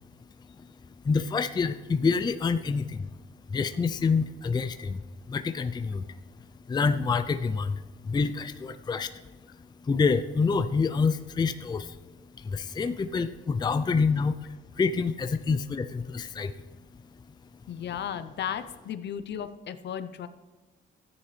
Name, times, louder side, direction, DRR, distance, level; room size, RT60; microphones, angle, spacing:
voice 1, 1.0-3.1 3.5-6.2 6.7-9.1 9.8-12.0 12.4-16.5, left 5 dB, 20° left, 10 dB, 0.4 m, -27 dB
voice 2, 17.7-20.3, left 9 dB, 60° left, 11 dB, 0.7 m, -35 dB
13.5 x 9.8 x 3.2 m, 1.2 s
cardioid pair, 90°, 20 cm